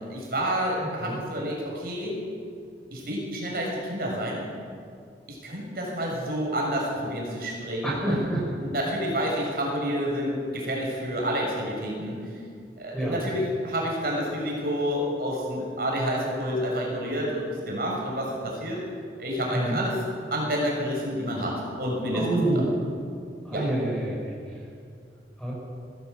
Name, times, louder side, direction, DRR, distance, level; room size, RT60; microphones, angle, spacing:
voice 1, 0.1-2.2 2.9-4.4 5.3-8.2 8.6-12.2 12.8-18.8 19.2-20.0 20.3-22.3 22.5-22.6 23.5-23.6, equal, 55° right, -2 dB, 6.5 m, -29 dB
voice 2, 0.8-1.2 7.8-8.5 12.9-13.3 19.5-19.8 22.1-22.6 23.4-24.6 25.4-25.5, right 1 dB, 5° left, -4 dB, 6.3 m, -28 dB
21.0 x 15.5 x 8.2 m, 2.3 s
head